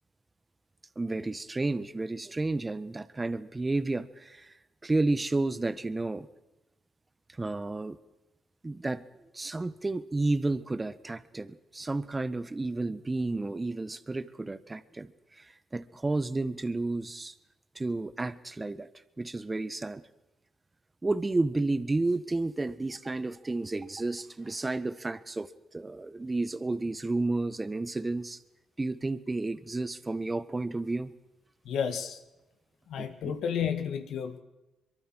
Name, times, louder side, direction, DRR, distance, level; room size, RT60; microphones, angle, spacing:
voice 1, 1.0-4.5 4.8-6.3 7.4-8.0 8.6-9.0 9.3-15.1 15.7-17.3 17.7-18.9 19.2-20.0 21.0-28.4 28.8-31.1 33.0-33.4, right 2 dB, 20° right, 14 dB, 1.4 m, -31 dB
voice 2, 31.6-32.2 32.9-34.4, left 7 dB, 75° left, 7 dB, 2.1 m, -31 dB
23.5 x 23.5 x 6.3 m, 1.0 s
cardioid pair, 90°, 0 cm